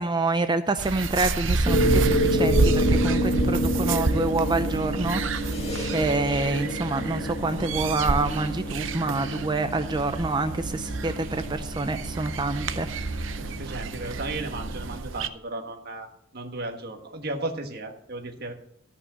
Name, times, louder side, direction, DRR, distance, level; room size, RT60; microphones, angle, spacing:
voice 1, 0.0-5.2 5.9-12.9, right 2 dB, 25° right, 10 dB, 0.5 m, -27 dB
sound 1, 0.8-15.3, right 3 dB, 75° right, 0.7 m, -29 dB
sound 2, 1.7-15.0, equal, 35° left, 1.8 m, -29 dB
voice 2, 13.4-16.1 16.3-18.5, right 2 dB, 55° right, 4 dB, 1.5 m, -35 dB
13.5 x 5.5 x 7.4 m, 0.74 s
head